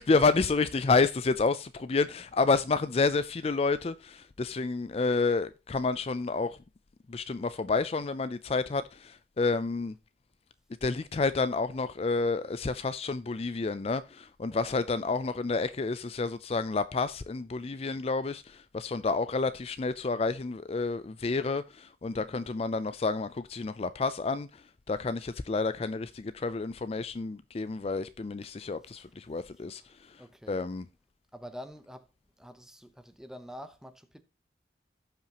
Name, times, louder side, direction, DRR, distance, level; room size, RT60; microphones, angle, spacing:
voice 1, 0.0-6.6 7.1-9.9 10.8-30.2 30.5-30.8, left 3 dB, 35° left, 0.4 m, -29 dB
voice 2, 22.1-22.5 28.5-29.1 29.9-30.6 31.3-32.1 32.4-34.2, equal, 5° right, 0.8 m, -47 dB
17.0 x 5.7 x 2.9 m
head